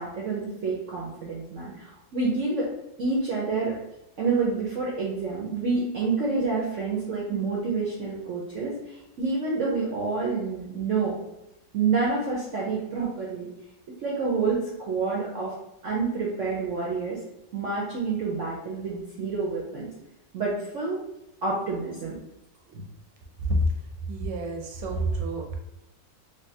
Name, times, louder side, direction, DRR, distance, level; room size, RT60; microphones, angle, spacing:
voice 1, 0.0-2.7 3.0-3.7 4.2-11.1 11.7-13.5 14.0-15.5 15.8-17.2 17.5-19.9 20.3-21.0 21.4-22.1 22.7-22.9, right 4 dB, 65° right, -4 dB, 0.8 m, -28 dB
voice 2, 24.1-25.6, equal, 85° right, 2 dB, 1.3 m, -27 dB
3.4 x 2.6 x 2.7 m, 0.89 s
omnidirectional pair, 2.0 m